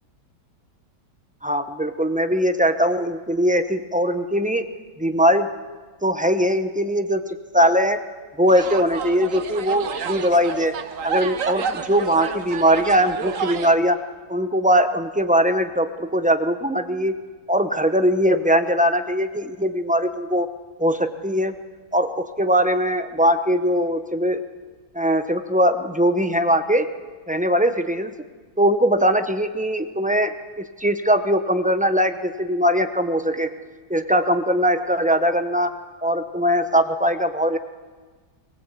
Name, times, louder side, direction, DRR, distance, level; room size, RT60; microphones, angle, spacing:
voice 1, 1.4-4.7 5.0-5.5 6.0-7.2 7.5-8.0 8.4-10.7 11.0-14.0 14.3-17.1 17.5-20.5 20.8-21.5 21.9-24.4 24.9-26.9 27.3-28.1 28.6-33.5 33.9-35.7 36.0-37.6, equal, 10° right, 8 dB, 0.5 m, -20 dB
sound 1, 8.5-13.7, right 7 dB, 55° right, 1.2 m, -30 dB
21.5 x 21.5 x 8.3 m, 1.4 s
omnidirectional pair, 1.9 m